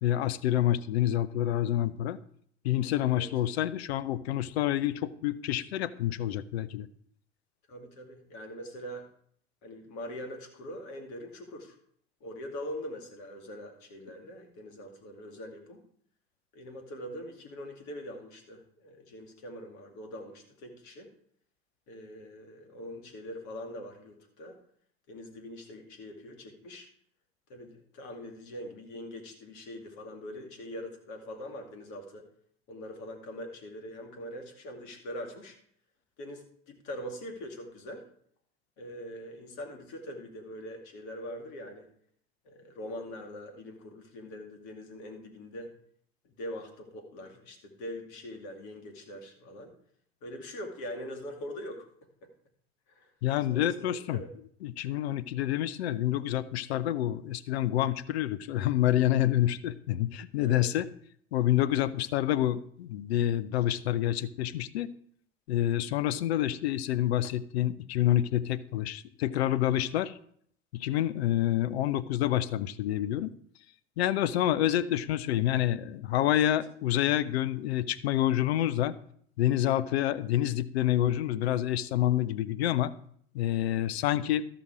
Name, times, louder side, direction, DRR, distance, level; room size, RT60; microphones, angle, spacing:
voice 1, 0.0-2.2 2.6-6.9 53.2-54.2 54.6-60.9 61.3-64.9 65.5-70.1 70.7-73.3 74.0-79.0 79.4-82.9 83.3-84.4, left 12 dB, 80° left, 16 dB, 0.6 m, -28 dB
voice 2, 7.7-9.1 9.6-11.8 12.2-15.8 16.5-21.1 21.9-24.6 25.1-26.9 27.5-32.3 32.7-35.6 36.2-38.0 38.8-41.9 42.4-45.7 46.2-49.7 50.2-51.9 52.2-52.3 52.9-53.1 53.5-54.3 60.4-60.7, equal, 60° left, 3 dB, 2.6 m, -43 dB
14.0 x 5.9 x 4.8 m, 0.63 s
hypercardioid pair, 70°, 31 cm